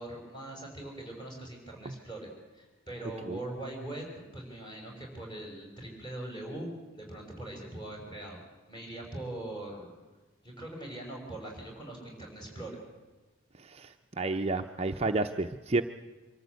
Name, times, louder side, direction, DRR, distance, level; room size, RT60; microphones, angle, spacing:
voice 1, 0.0-4.1 4.3-8.4 8.7-10.0 10.4-12.8, right 1 dB, 20° left, 0 dB, 5.5 m, -41 dB
voice 2, 13.7-15.8, right 3 dB, 30° right, 5 dB, 0.6 m, -30 dB
25.0 x 13.5 x 8.2 m, 1.2 s
head